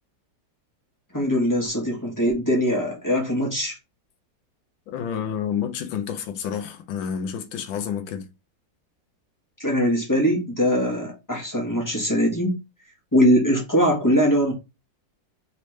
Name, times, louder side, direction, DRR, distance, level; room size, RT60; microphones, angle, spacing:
voice 1, 1.1-3.8 9.6-12.6 13.1-14.5, equal, 15° left, 1.0 m, -21 dB
voice 2, 4.9-8.3, left 8 dB, 85° left, 1.4 m, -29 dB
4.2 x 3.2 x 3.1 m
omnidirectional pair, 2.1 m